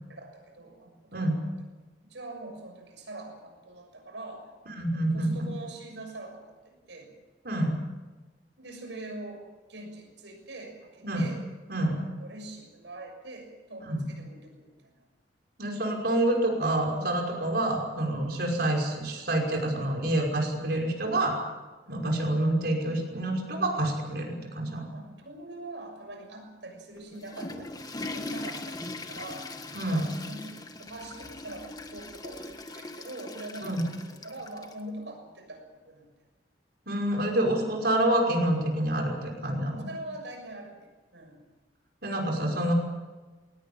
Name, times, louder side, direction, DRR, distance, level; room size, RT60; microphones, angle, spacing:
voice 1, 0.1-1.3 2.1-4.5 4.9-7.1 8.6-11.4 11.9-15.0 21.8-22.2 24.9-29.5 29.9-34.0 34.2-36.1 39.7-41.4, right 2 dB, 80° right, 4 dB, 6.6 m, -43 dB
voice 2, 4.7-5.3 7.4-7.7 11.0-11.3 11.7-12.0 13.9-14.1 15.6-21.4 21.9-24.8 29.7-30.0 33.6-33.8 36.9-39.9 42.0-42.7, right 1 dB, 60° right, 1 dB, 5.6 m, -27 dB
Water / Toilet flush, 27.0-34.8, left 2 dB, 20° left, 1.6 m, -40 dB
21.5 x 19.0 x 8.9 m, 1.2 s
head